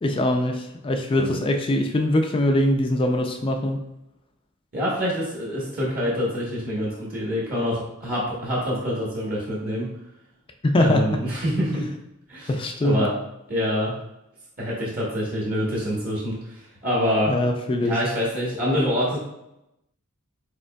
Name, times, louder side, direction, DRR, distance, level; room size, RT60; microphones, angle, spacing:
voice 1, 0.0-3.8 10.6-11.2 12.5-13.1 17.3-18.0, left 1 dB, 25° left, 4 dB, 0.3 m, -22 dB
voice 2, 4.7-9.9 10.8-11.9 12.3-12.5 12.8-13.1 13.5-13.9 14.6-17.3 17.8-19.2, equal, 45° right, -6 dB, 1.1 m, -26 dB
5.1 x 4.2 x 2.3 m, 0.88 s
head